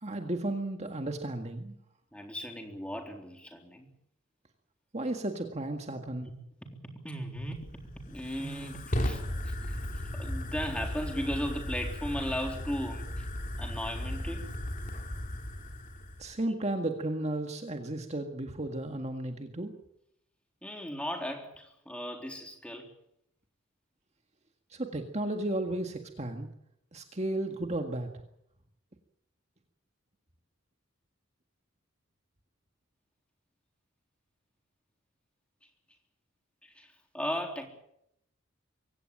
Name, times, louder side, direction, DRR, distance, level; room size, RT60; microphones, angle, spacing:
voice 1, 0.0-1.8 4.9-6.3 16.2-19.7 24.7-26.5 26.9-28.1, right 1 dB, 30° right, 4 dB, 1.8 m, -34 dB
voice 2, 2.1-3.9 6.2-6.3 7.0-7.6 8.1-13.3 13.6-14.5 20.6-22.9 36.6-37.7, equal, 5° left, 3 dB, 3.7 m, -37 dB
Fire, 7.4-16.3, left 1 dB, 40° left, 3.0 m, -36 dB
24.0 x 17.0 x 8.8 m, 0.77 s
head